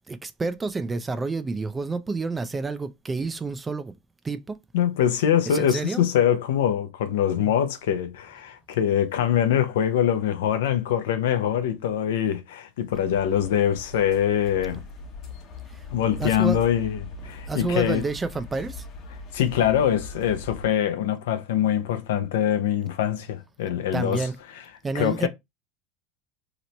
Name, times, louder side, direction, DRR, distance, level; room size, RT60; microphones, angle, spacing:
voice 1, 0.1-3.9 4.2-4.6 5.5-6.1 7.4-7.5 16.2-16.6 17.3-18.8 23.9-24.4 24.8-25.3, right 3 dB, 15° right, 0.4 m, -29 dB
voice 2, 4.7-14.8 15.9-18.1 19.3-24.3 24.9-25.3, left 10 dB, 85° left, 0.6 m, -23 dB
sound 1, 12.9-20.7, left 1 dB, 45° left, 0.9 m, -40 dB
3.0 x 2.0 x 3.9 m
supercardioid pair, 110°, 0 cm